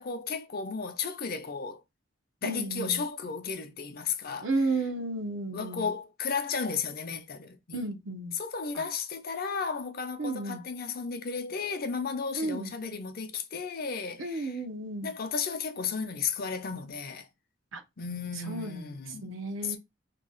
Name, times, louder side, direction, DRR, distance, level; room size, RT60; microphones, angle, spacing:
voice 1, 0.0-1.8 2.4-4.5 5.5-7.8 8.4-14.6 15.0-17.3 18.0-19.8, left 5 dB, 50° left, 0.6 m, -34 dB
voice 2, 2.4-3.0 4.4-5.9 7.7-8.4 8.7-8.8 10.2-10.6 12.3-12.7 14.2-15.1 17.7-17.8 18.5-18.9 19.2-19.8, right 2 dB, 80° right, 0.8 m, -33 dB
2.9 x 2.3 x 3.8 m
head